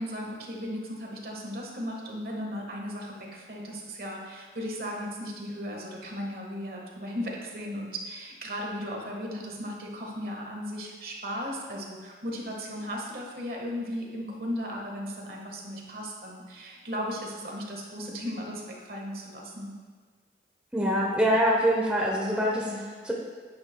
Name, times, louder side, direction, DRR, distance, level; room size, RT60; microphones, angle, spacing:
voice 1, 0.0-19.7 22.5-22.9, equal, 55° right, -1 dB, 1.4 m, -36 dB
voice 2, 20.7-22.6 23.0-23.1, equal, 5° right, -3 dB, 0.8 m, -24 dB
10.0 x 9.4 x 2.2 m, 1.5 s
head